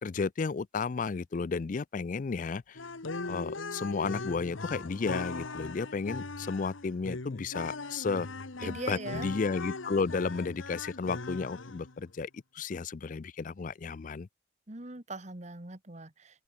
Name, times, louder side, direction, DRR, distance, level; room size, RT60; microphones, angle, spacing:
voice 1, 0.0-2.8 3.2-8.3 8.6-14.3, left 4 dB, 40° left, 0.4 m, -33 dB
sound 1, 2.7-12.0, left 3 dB, 85° left, 1.5 m, -39 dB
sound 2, 6.1-8.2, right 1 dB, 75° right, 6.0 m, -68 dB
voice 2, 8.6-9.3 14.7-16.4, right 2 dB, 35° right, 1.6 m, -41 dB
open air
head